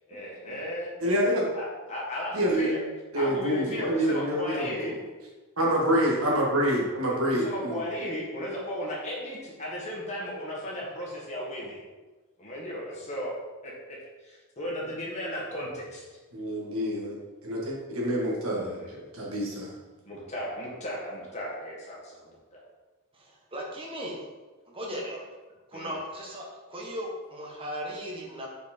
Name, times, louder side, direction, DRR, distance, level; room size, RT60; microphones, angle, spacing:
voice 1, 0.1-0.9 1.5-2.8 3.1-5.0 6.7-11.9 12.4-13.3 13.6-16.0 18.5-19.0 20.1-22.6 25.7-25.9, equal, 30° left, -4 dB, 1.6 m, -36 dB
voice 2, 1.0-1.5 2.3-2.8 3.1-5.0 5.6-7.8 16.3-17.2 17.4-18.8 19.1-19.7, equal, 65° right, -3 dB, 1.7 m, -27 dB
voice 3, 23.1-24.2 24.7-25.2 25.7-28.5, equal, 25° right, -2 dB, 1.2 m, -37 dB
5.1 x 4.6 x 4.4 m, 1.3 s
head